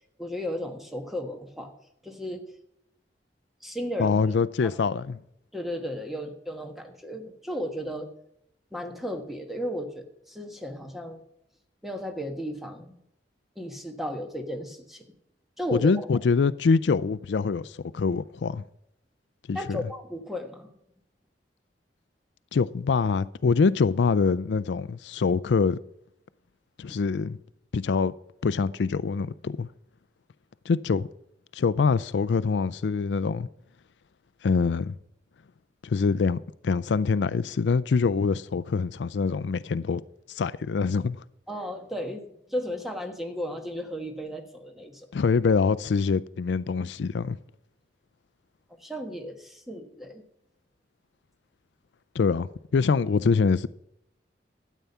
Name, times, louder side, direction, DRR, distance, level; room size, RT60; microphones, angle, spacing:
voice 1, 0.2-1.7 2.0-2.4 3.6-4.7 5.5-8.1 8.7-11.2 11.8-12.9 13.6-15.0 15.6-15.9 19.5-20.7 26.9-27.0 41.5-45.1 48.8-50.2, equal, ahead, 1.3 m, -34 dB
voice 2, 4.0-5.2 15.7-18.6 19.5-19.8 22.5-25.8 26.8-27.4 27.7-28.1 28.4-29.7 30.7-31.1 31.5-33.5 34.4-35.0 35.8-36.4 36.6-40.0 40.3-41.2 45.1-47.4 52.1-53.7, left 5 dB, 80° left, 0.4 m, -24 dB
12.5 x 8.3 x 5.6 m
head